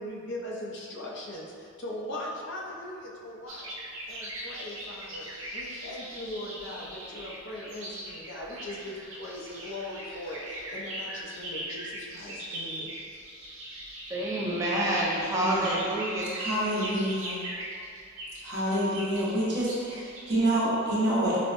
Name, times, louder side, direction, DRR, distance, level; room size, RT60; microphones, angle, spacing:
voice 1, 0.0-3.7 4.1-13.0, left 1 dB, 60° left, -3 dB, 0.5 m, -40 dB
sound 1, 3.5-20.6, right 1 dB, 85° right, 0.7 m, -40 dB
voice 2, 14.1-16.3, right 1 dB, 15° right, -6 dB, 0.6 m, -28 dB
voice 3, 15.4-15.7 16.3-17.4 18.4-21.4, right 1 dB, 60° right, -7 dB, 0.9 m, -27 dB
5.0 x 2.1 x 2.5 m, 2.3 s
head